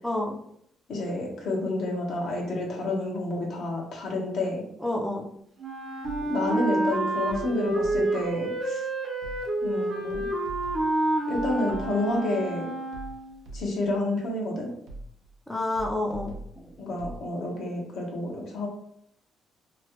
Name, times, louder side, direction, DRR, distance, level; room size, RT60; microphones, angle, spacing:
voice 1, 0.0-0.4 4.8-5.2 15.5-16.8, left 1 dB, 5° left, -1 dB, 0.5 m, -29 dB
voice 2, 0.9-4.6 6.3-8.9 9.6-10.3 11.3-12.8 13.5-14.7 16.8-18.7, left 1 dB, 75° left, -1 dB, 0.9 m, -29 dB
Wind instrument woodwind instrument, 5.6-13.3, right 2 dB, 45° right, 0.7 m, -29 dB
sound 1, 6.0-6.6 7.3-8.3 9.2-9.7 10.1-12.2 12.9-14.0 14.9-15.4 15.8-17.3, right 1 dB, 80° right, 0.7 m, -42 dB
3.0 x 2.3 x 2.9 m, 0.70 s
cardioid pair, 90°, 0 cm